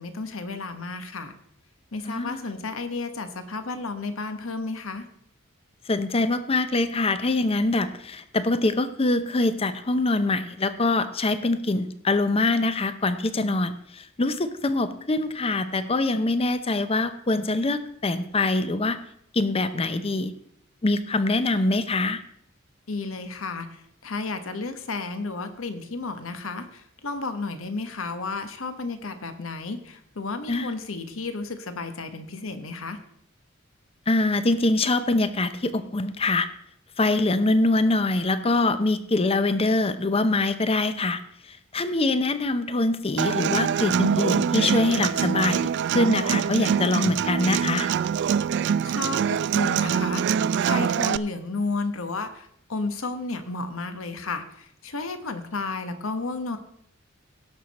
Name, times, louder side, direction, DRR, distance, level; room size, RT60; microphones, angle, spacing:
voice 1, 0.0-1.3 1.9-5.0 22.9-33.0 48.8-50.3 50.6-56.6, left 3 dB, 75° left, 8 dB, 1.1 m, -32 dB
voice 2, 2.0-2.4 5.9-19.0 19.3-20.3 20.8-22.2 30.5-30.7 34.1-36.5 37.0-41.2 41.5-47.9, left 2 dB, 30° left, 11 dB, 0.6 m, -24 dB
Human voice / Acoustic guitar, 43.2-51.2, right 8 dB, 55° right, 0.3 m, -24 dB
17.5 x 6.4 x 4.1 m, 0.67 s
head